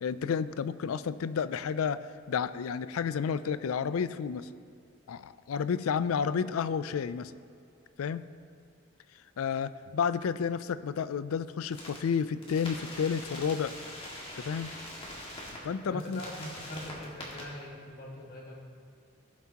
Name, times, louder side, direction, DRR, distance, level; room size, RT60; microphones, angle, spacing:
voice 1, 0.0-4.5 5.1-7.3 8.0-8.3 9.4-13.7 14.4-14.7 15.6-16.2, left 6 dB, 85° left, 15 dB, 0.4 m, -31 dB
sound 1, 11.7-12.0 12.4-15.6 16.0-17.4, left 1 dB, 25° left, 1.8 m, -43 dB
voice 2, 15.8-18.6, equal, 45° left, -3 dB, 2.0 m, -42 dB
16.0 x 7.4 x 2.9 m, 2.3 s
head